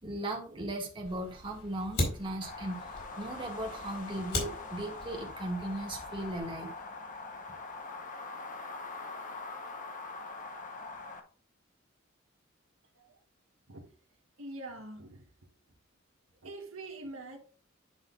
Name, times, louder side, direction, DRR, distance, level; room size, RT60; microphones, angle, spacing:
voice 1, 0.0-2.8 3.2-6.7, right 1 dB, 25° right, 2.1 m, -37 dB
Fire, 1.0-6.4, left 1 dB, 55° left, 4.1 m, -39 dB
sound 1, 2.4-11.2, left 3 dB, 40° left, 1.1 m, -43 dB
voice 2, 14.4-15.5 16.4-17.4, right 2 dB, 75° right, 1.4 m, -44 dB
10.5 x 5.8 x 2.6 m
head